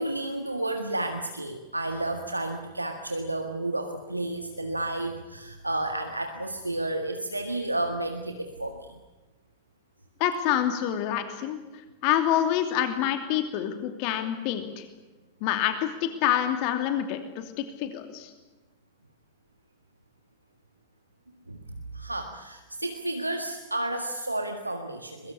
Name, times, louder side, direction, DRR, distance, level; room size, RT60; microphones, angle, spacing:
voice 1, 0.0-9.0 21.5-25.3, right 1 dB, 85° right, 6 dB, 1.8 m, -31 dB
voice 2, 10.2-11.6 12.0-14.9 15.4-18.3, left 11 dB, 45° left, 7 dB, 2.8 m, -27 dB
23.0 x 23.0 x 8.5 m, 1.1 s
figure-of-eight pair, 90°, 0 cm